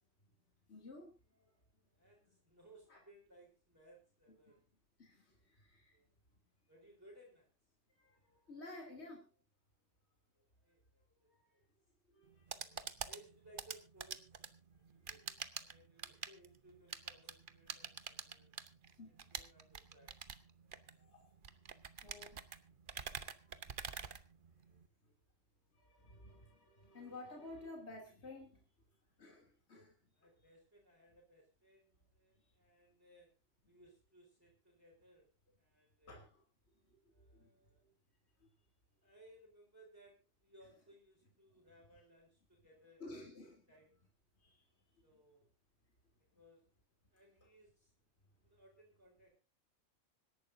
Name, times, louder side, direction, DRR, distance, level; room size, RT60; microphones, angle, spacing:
voice 1, 0.7-1.6 2.9-3.0 4.3-4.6 5.0-6.0 7.9-9.3 11.3-11.6 12.0-13.0 14.9-15.0 19.0-19.3 20.9-21.4 22.0-22.4 22.9-23.1 23.8-24.0 24.7-25.1 25.7-28.7 29.2-30.1 32.3-32.5 36.1-36.4 36.8-37.6 37.8-37.9 43.0-43.6 44.4-45.2, left 2 dB, 55° left, 1 dB, 3.2 m, -54 dB
voice 2, 1.9-4.6 5.9-6.1 6.7-7.5 10.4-11.6 13.0-14.5 14.9-15.2 15.6-18.5 19.3-20.1 30.1-33.3 33.6-35.3 35.6-36.2 37.1-37.8 39.0-43.9 45.0-45.5 46.3-46.7 47.1-47.9 48.4-49.4, right 1 dB, 10° right, -5 dB, 4.0 m, -64 dB
sound 1, 12.2-24.9, right 6 dB, 45° right, 1.0 m, -47 dB
25.5 x 11.5 x 2.7 m, 0.32 s
omnidirectional pair, 1.3 m